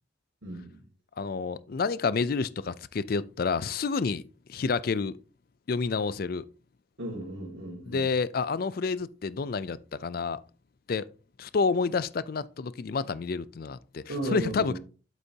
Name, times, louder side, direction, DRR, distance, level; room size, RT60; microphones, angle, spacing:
voice 1, 0.4-0.8 7.0-8.1 14.1-14.8, right 1 dB, 65° right, 2.1 m, -35 dB
voice 2, 1.2-4.2 4.5-5.2 5.7-6.5 7.9-10.4 10.9-11.1 11.4-14.8, left 4 dB, 45° left, 0.4 m, -29 dB
8.1 x 8.0 x 2.8 m
head